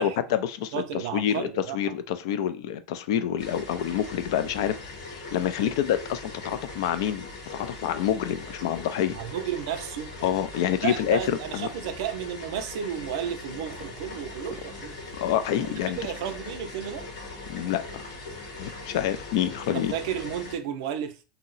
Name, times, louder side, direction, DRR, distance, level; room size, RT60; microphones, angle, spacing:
voice 1, 0.0-0.8 1.1-1.5 1.7-9.2 10.2-11.7 15.2-16.0 17.5-18.1 18.6-19.9, left 10 dB, 70° left, 0.4 m, -27 dB
voice 2, 0.7-2.0 9.1-10.1 10.8-15.0 15.6-17.1 19.7-21.2, right 9 dB, 65° right, 0.5 m, -33 dB
sound 1, 3.4-20.6, left 2 dB, 90° left, 1.3 m, -40 dB
2.7 x 2.0 x 3.9 m
supercardioid pair, 175°, 3 cm